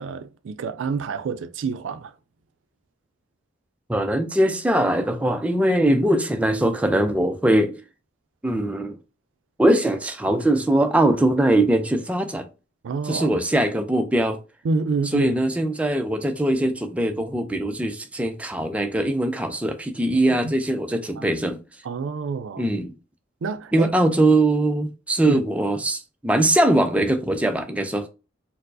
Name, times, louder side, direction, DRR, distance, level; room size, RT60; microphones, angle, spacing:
voice 1, 0.0-2.1 12.8-13.3 14.6-15.3 20.3-20.5 21.2-21.3 21.8-22.7 23.4-23.9 25.2-25.4, right 4 dB, 85° right, 0.4 m, -28 dB
voice 2, 3.9-7.7 8.4-9.0 9.6-12.5 13.0-14.4 15.1-21.6 22.6-22.9 23.7-28.1, right 1 dB, 5° right, 0.3 m, -21 dB
4.4 x 2.0 x 2.5 m
head